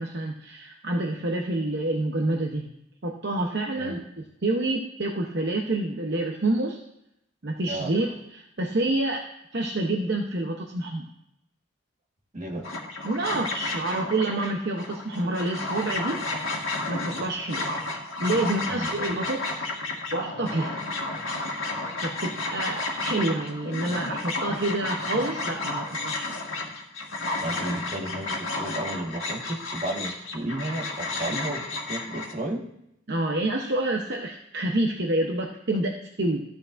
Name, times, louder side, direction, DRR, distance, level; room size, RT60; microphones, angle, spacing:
voice 1, 0.0-2.7 3.0-4.0 4.4-6.8 7.4-9.2 9.5-11.0 13.0-16.2 16.9-17.7 18.2-19.6 20.1-20.8 22.0-26.4 29.9-30.0 31.3-31.4 33.1-36.4, right 2 dB, 55° right, 1 dB, 0.8 m, -28 dB
voice 2, 12.3-12.7 18.7-18.9 27.4-32.6, right 1 dB, 35° right, -1 dB, 1.5 m, -33 dB
sound 1, 12.6-32.3, left 2 dB, 75° left, 1.6 m, -32 dB
13.5 x 8.5 x 2.5 m, 0.79 s
head